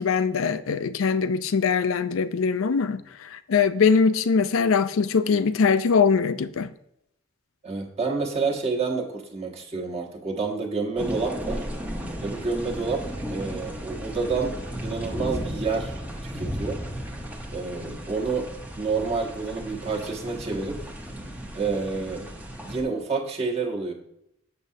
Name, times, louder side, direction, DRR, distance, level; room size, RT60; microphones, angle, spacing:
voice 1, 0.0-3.0 3.3-6.7, left 5 dB, 85° left, 0.4 m, -22 dB
voice 2, 7.6-11.7 12.2-13.0 13.3-14.5 14.8-16.8 17.5-20.9 21.5-22.3 22.6-23.9, right 4 dB, 30° right, 1.2 m, -29 dB
sound 1, 11.0-22.8, equal, 10° right, 0.8 m, -35 dB
7.5 x 7.0 x 2.7 m
head